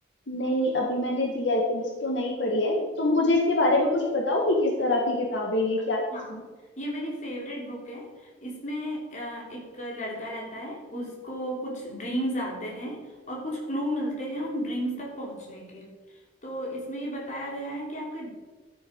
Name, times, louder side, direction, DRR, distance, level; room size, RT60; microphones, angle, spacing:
voice 1, 0.3-6.0 6.3-6.4, left 2 dB, 75° left, 0 dB, 1.6 m, -25 dB
voice 2, 6.8-18.3, equal, 40° left, -2 dB, 3.0 m, -34 dB
13.0 x 7.0 x 5.2 m, 1.3 s
head